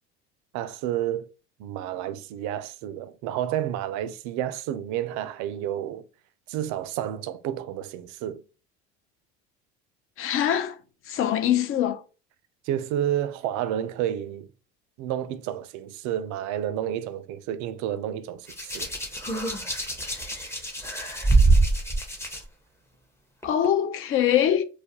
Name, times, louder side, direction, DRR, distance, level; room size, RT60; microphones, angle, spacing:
voice 1, 0.5-1.3 1.6-6.0 6.5-8.4 12.7-14.5 15.0-18.9, right 11 dB, 60° right, 0.4 m, -30 dB
voice 2, 10.2-10.8 11.1-12.0 23.4-24.6, left 10 dB, 40° left, 0.5 m, -23 dB
Hands, 18.5-22.4 23.4-23.7, right 3 dB, 10° left, 0.7 m, -24 dB
2.3 x 2.1 x 2.8 m
hypercardioid pair, 80°, 34 cm